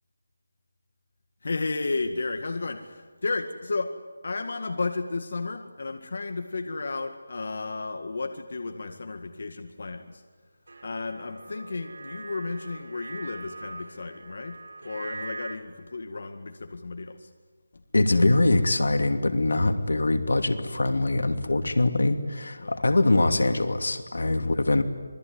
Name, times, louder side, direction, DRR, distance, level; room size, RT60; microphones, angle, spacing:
voice 1, 1.4-4.0 4.2-10.2 10.8-17.3 17.7-17.8 22.6-22.9 24.4-24.6, left 3 dB, 55° left, 6 dB, 2.0 m, -33 dB
sound 1, 10.7-15.5, right 3 dB, 80° right, 7.2 m, -42 dB
voice 2, 17.9-24.8, left 2 dB, 90° left, 7 dB, 2.8 m, -23 dB
26.5 x 20.5 x 9.8 m, 1.4 s
figure-of-eight pair, 175°, 0 cm